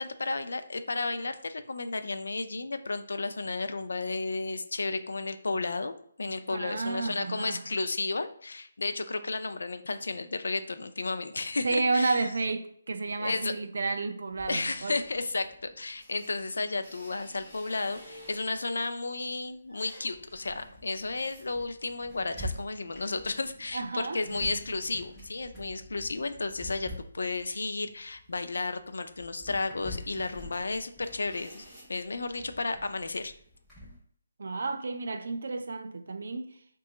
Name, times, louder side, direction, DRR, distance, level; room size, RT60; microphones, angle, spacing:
voice 1, 0.0-12.3 13.2-13.5 14.5-33.3, left 3 dB, 80° left, 0.4 m, -33 dB
voice 2, 6.5-7.6 11.6-15.0 23.7-24.2 34.4-36.5, right 3 dB, 60° right, 0.4 m, -31 dB
sound 1, 14.3-18.8 19.2-34.0, equal, 5° left, 0.9 m, -47 dB
3.6 x 2.3 x 3.9 m
hypercardioid pair, 175°, 0 cm